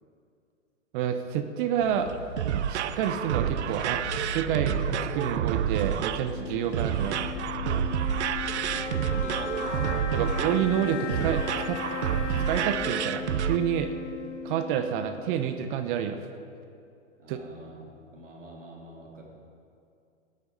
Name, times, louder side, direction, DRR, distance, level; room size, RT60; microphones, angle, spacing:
voice 1, 0.9-2.1 2.7-4.0 4.3-7.4 10.1-11.8 12.5-13.9 14.4-16.2 17.3-17.4, right 9 dB, 45° right, 8 dB, 1.0 m, -28 dB
sound 1, 1.8-11.3, left 2 dB, 85° left, 2.5 m, -40 dB
sound 2, 2.1-13.6, right 10 dB, 65° right, 0.7 m, -29 dB
sound 3, 6.2-15.6, left 6 dB, 70° left, 1.9 m, -37 dB
voice 2, 8.8-10.1 17.2-19.2, right 1 dB, 85° right, -2 dB, 3.4 m, -45 dB
18.0 x 12.5 x 4.1 m, 2.5 s
hypercardioid pair, 105°, 37 cm